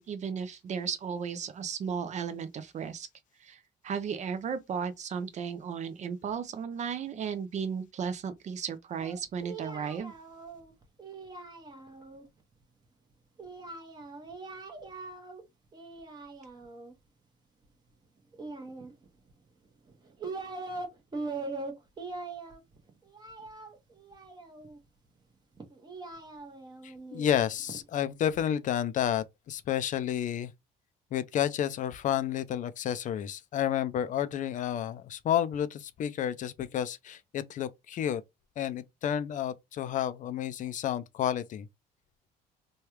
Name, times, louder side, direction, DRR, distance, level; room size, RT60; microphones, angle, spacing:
voice 1, 0.0-3.1 3.4-10.1, right 6 dB, 45° right, 0.5 m, -35 dB
Singing, 9.0-12.2 13.4-15.4 15.7-16.9 18.3-19.3 19.9-20.9 21.1-24.8 25.6-27.8, right 3 dB, 25° right, 1.0 m, -41 dB
voice 2, 26.8-30.5 31.1-38.2 38.6-41.7, left 10 dB, 50° left, 0.4 m, -31 dB
3.2 x 2.3 x 2.9 m
cardioid pair, 110°, 17 cm